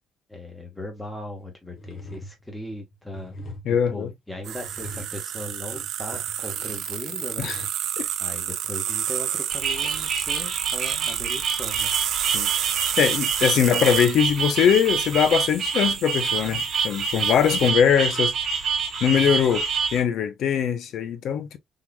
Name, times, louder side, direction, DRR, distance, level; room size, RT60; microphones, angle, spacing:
voice 1, 0.3-3.4 3.7-7.5 8.2-11.9, left 1 dB, 5° left, 1.2 m, -38 dB
sound 1, 1.4-1.5 1.8-7.7, equal, 40° left, 0.9 m, -42 dB
voice 2, 3.6-4.1 7.4-7.6 8.0-8.1 12.3-12.7 13.0-18.3 19.0-21.6, left 8 dB, 65° left, 0.6 m, -21 dB
sound 2, 4.4-17.7, right 10 dB, 70° right, 0.5 m, -31 dB
sound 3, 9.5-20.0, right 6 dB, 45° right, 1.5 m, -27 dB
3.8 x 3.1 x 2.2 m
cardioid pair, 150°, 0 cm